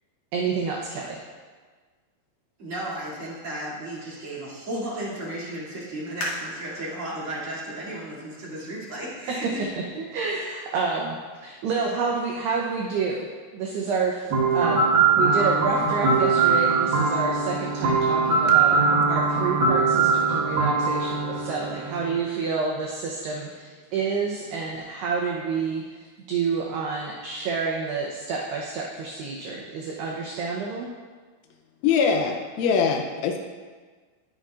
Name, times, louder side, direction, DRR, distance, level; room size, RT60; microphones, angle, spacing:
voice 1, 0.3-1.2 9.3-9.4 9.9-11.2 11.4-13.3 13.5-18.8 19.1-30.9, right 5 dB, 75° right, -2 dB, 2.6 m, -29 dB
voice 2, 2.6-9.6, right 1 dB, 35° right, -8 dB, 2.7 m, -34 dB
sound 1, 6.2-9.6 10.2-10.3 10.9-11.3 11.7-11.8, left 1 dB, 45° left, 2.2 m, -39 dB
sound 2, 14.3-22.2, right 4 dB, 60° right, 3.0 m, -21 dB
voice 3, 31.8-33.4, left 6 dB, 85° left, 3 dB, 3.4 m, -22 dB
20.5 x 7.0 x 2.5 m, 1.5 s
omnidirectional pair, 5.7 m